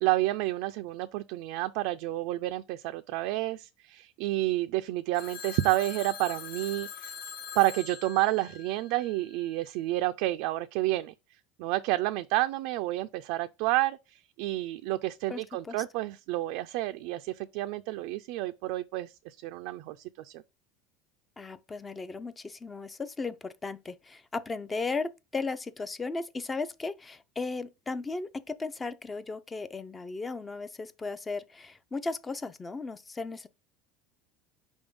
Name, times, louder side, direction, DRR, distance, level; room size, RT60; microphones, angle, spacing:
voice 1, 0.0-7.1 7.6-11.1 11.6-20.4, right 17 dB, 70° right, 0.4 m, -30 dB
Telephone, 5.1-9.4, left 7 dB, 75° left, 1.2 m, -43 dB
voice 2, 15.3-15.8 21.4-33.5, left 3 dB, 15° left, 0.4 m, -36 dB
5.1 x 3.5 x 5.2 m
supercardioid pair, 140°, 0 cm